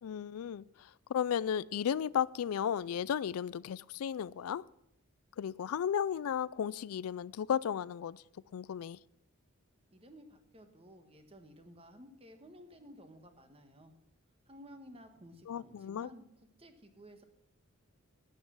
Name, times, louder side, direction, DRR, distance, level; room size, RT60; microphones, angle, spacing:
voice 1, 0.0-4.6 5.4-8.2 8.5-9.0 15.5-16.1, left 8 dB, 85° left, 0.4 m, -34 dB
voice 2, 9.9-13.9 14.5-16.2 16.6-17.2, equal, 25° right, 1.4 m, -55 dB
11.5 x 9.4 x 6.2 m
head